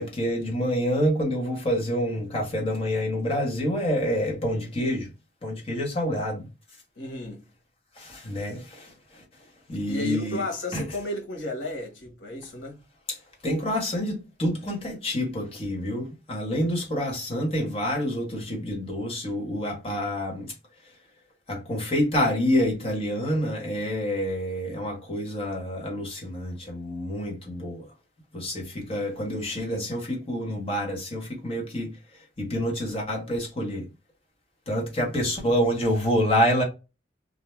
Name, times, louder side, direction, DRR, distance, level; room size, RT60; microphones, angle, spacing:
voice 1, 0.0-5.1 5.4-6.5 8.0-9.2 9.7-10.4 10.7-10.9 13.1-13.2 13.4-20.5 21.5-27.9 28.3-31.9 32.4-33.9 34.7-36.6, equal, 30° left, 1.0 m, -27 dB
voice 2, 7.0-7.4 9.9-12.8, left 1 dB, 85° left, 1.2 m, -32 dB
2.6 x 2.2 x 3.0 m
head